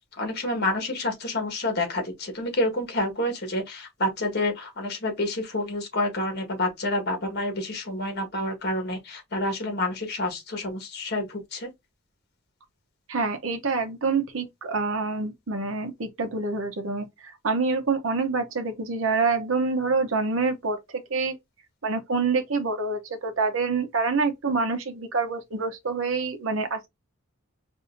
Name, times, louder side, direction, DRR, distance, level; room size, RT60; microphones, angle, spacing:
voice 1, 0.2-11.7, left 1 dB, 50° left, 1.5 m, -28 dB
voice 2, 13.1-20.8 21.1-21.4 21.8-26.9, right 4 dB, 75° right, 0.8 m, -26 dB
5.0 x 2.6 x 2.6 m
head